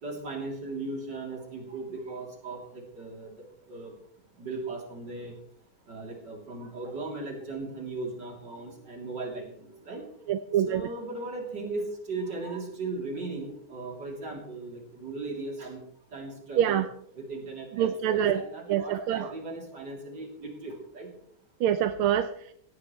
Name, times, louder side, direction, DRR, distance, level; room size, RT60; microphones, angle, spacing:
voice 1, 0.0-3.3 3.7-3.9 4.4-5.3 5.9-10.0 10.6-15.8 16.1-16.8 17.2-21.1, right 3 dB, 55° right, 0 dB, 4.0 m, -37 dB
voice 2, 10.3-10.8 16.6-16.8 17.8-18.4 18.7-19.3 21.6-22.3, right 10 dB, 85° right, 9 dB, 1.6 m, -25 dB
17.0 x 16.5 x 3.2 m, 0.67 s
omnidirectional pair, 2.3 m